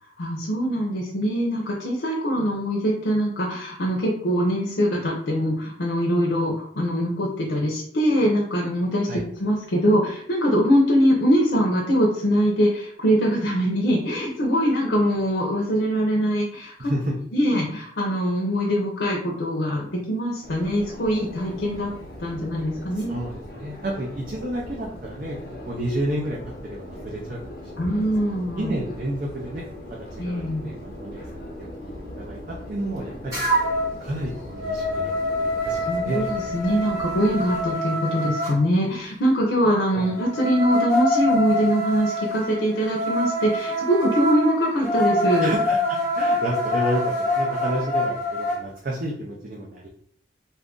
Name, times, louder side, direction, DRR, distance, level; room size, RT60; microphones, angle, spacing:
voice 1, 0.2-16.9 17.3-21.9 22.2-23.2 27.8-28.7 30.2-30.7 35.8-45.5, equal, 90° left, -2 dB, 0.6 m, -23 dB
voice 2, 16.8-17.1 22.9-25.4 25.7-28.0 28.3-29.6 30.2-33.4 34.0-36.3 37.5-37.6 39.9-40.0 45.4-49.9, right 1 dB, 50° right, -3 dB, 0.5 m, -31 dB
Subway metro underground, 20.4-37.7, left 1 dB, 55° left, 0.8 m, -40 dB
sound 1, 33.3-33.9 34.3-38.5 40.0-48.6, equal, 20° right, 1.3 m, -25 dB
2.6 x 2.4 x 3.6 m, 0.63 s
head